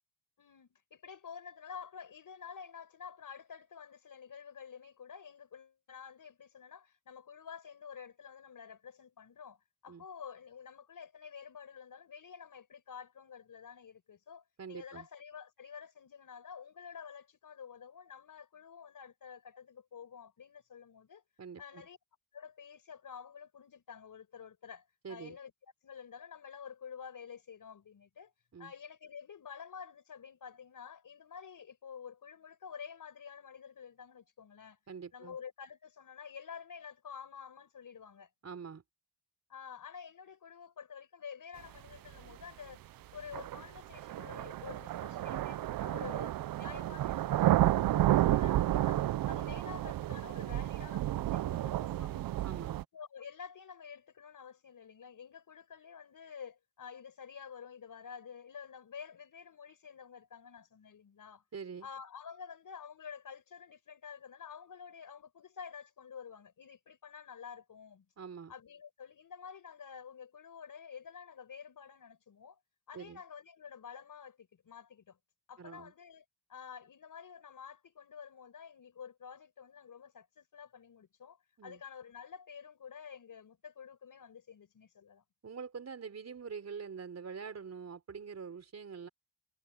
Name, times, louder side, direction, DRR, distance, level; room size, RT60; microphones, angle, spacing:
voice 1, 0.4-21.2 21.6-22.0 22.3-25.5 25.8-28.3 28.6-34.8 35.1-38.3 39.5-42.8 43.1-52.2 52.9-61.4 61.8-68.1 68.5-72.6 72.9-75.2 75.5-76.2 76.5-85.2, left 7 dB, 45° left, 5.7 m, -49 dB
voice 2, 14.6-15.1 21.4-21.8 25.0-25.4 28.5-28.7 34.9-35.4 38.4-38.8 52.4-52.8 61.5-61.9 68.2-68.5 72.9-73.2 75.6-75.9 81.6-81.8 85.4-89.1, right 6 dB, 35° right, 4.6 m, -45 dB
sound 1, 42.3-42.4 43.3-52.8, right 14 dB, 50° right, 0.5 m, -31 dB
cardioid pair, 155°, 46 cm